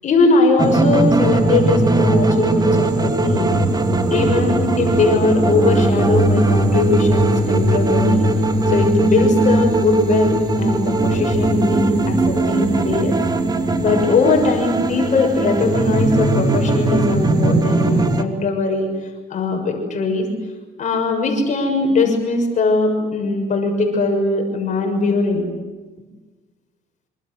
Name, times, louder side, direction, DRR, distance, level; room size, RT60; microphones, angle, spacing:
voice 1, 0.0-3.6 4.1-8.3 8.7-13.1 13.8-18.9 19.3-20.2 20.8-25.5, left 3 dB, 45° left, 3 dB, 6.8 m, -20 dB
sound 1, 0.6-18.2, right 2 dB, 25° right, 2.7 m, -18 dB
26.5 x 26.0 x 8.0 m, 1.3 s
cardioid pair, 110°, 17 cm